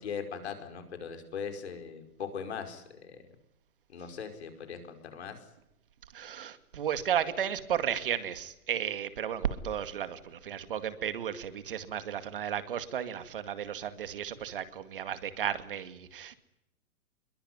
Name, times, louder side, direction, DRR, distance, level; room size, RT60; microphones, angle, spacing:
voice 1, 0.0-3.2 3.9-5.4, left 6 dB, 45° left, 7 dB, 5.3 m, -40 dB
voice 2, 6.1-16.4, right 9 dB, 35° right, 11 dB, 2.1 m, -34 dB
26.5 x 22.5 x 9.6 m, 0.84 s
hypercardioid pair, 175°, 44 cm